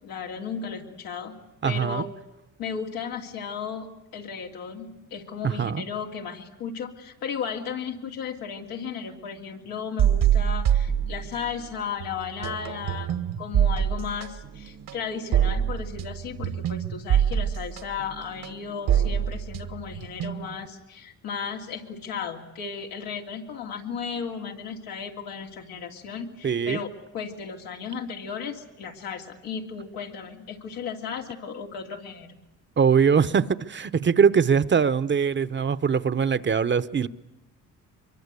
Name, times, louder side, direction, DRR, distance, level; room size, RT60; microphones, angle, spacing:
voice 1, 0.0-1.3 1.6-2.1 2.6-3.9 4.1-26.9 27.1-32.4, left 6 dB, 90° left, 1 dB, 2.9 m, -35 dB
voice 2, 1.6-2.0 5.4-5.8 26.4-26.8 32.8-37.1, right 6 dB, 35° right, 13 dB, 0.9 m, -22 dB
sound 1, 10.0-11.7 12.0-20.7, right 9 dB, 75° right, 1.6 m, -25 dB
23.5 x 23.0 x 8.3 m, 0.93 s
cardioid pair, 85°, 33 cm